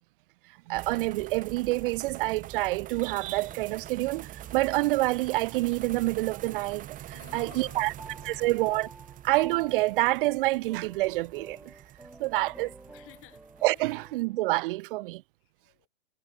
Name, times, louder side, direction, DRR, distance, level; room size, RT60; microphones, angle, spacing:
sound 1, 0.7-14.3, right 13 dB, 20° right, 1.2 m, -45 dB
voice 1, 0.7-7.0 7.3-7.9 8.2-8.9 9.2-11.7 12.2-12.7 13.6-15.2, right 20 dB, 50° right, 0.7 m, -27 dB
sound 2, 3.4-6.9 7.2-14.5, right 2 dB, 5° right, 1.3 m, -52 dB
voice 2, 7.1-8.6 12.4-14.0 15.4-15.9, left 21 dB, 35° left, 6.8 m, -55 dB
hypercardioid pair, 135°, 36 cm